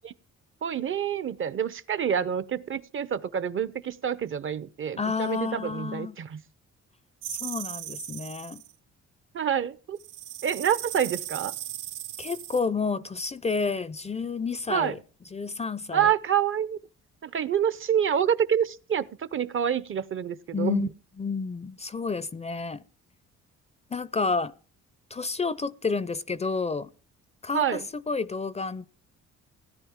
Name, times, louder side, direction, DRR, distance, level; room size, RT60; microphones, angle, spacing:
voice 1, 0.6-6.4 9.3-10.0 10.4-11.5 14.7-15.0 15.9-16.8 17.2-20.9 27.5-27.8, right 8 dB, 45° right, 0.6 m, -27 dB
voice 2, 5.0-6.2 7.3-8.6 12.2-15.0 15.3-16.1 20.5-20.9 21.2-22.8 23.9-24.5 25.1-26.9 27.4-28.9, left 4 dB, 20° left, 0.5 m, -30 dB
sound 1, 7.2-8.7 10.0-12.6, right 12 dB, 85° right, 0.6 m, -37 dB
16.5 x 10.0 x 3.6 m
cardioid pair, 90°, 30 cm